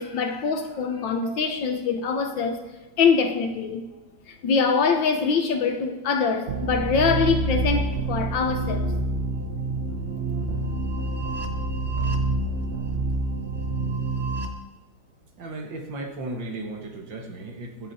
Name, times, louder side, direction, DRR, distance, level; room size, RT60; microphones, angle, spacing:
voice 1, 0.0-2.6 3.0-3.9 4.3-9.0, left 5 dB, 65° left, 1.6 m, -24 dB
sound 1, 6.5-14.5, right 2 dB, 40° right, 1.0 m, -27 dB
voice 2, 15.4-17.9, right 2 dB, 65° right, 2.2 m, -35 dB
22.0 x 8.2 x 4.2 m
omnidirectional pair, 2.3 m